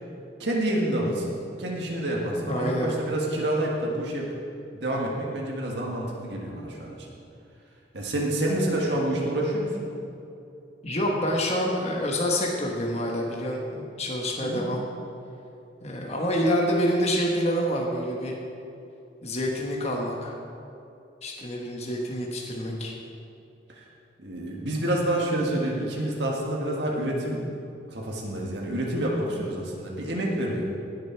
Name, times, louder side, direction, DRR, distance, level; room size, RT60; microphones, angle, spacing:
voice 1, 0.4-4.3 4.7-7.1 7.9-9.9 14.4-14.6 23.7-23.8 24.2-27.4 27.9-30.6, right 1 dB, 70° right, -2 dB, 1.7 m, -28 dB
voice 2, 2.5-2.9 10.8-14.8 15.8-18.3 19.2-20.3 21.2-22.9, equal, 35° left, -1 dB, 1.3 m, -27 dB
17.5 x 6.8 x 4.6 m, 2.8 s
head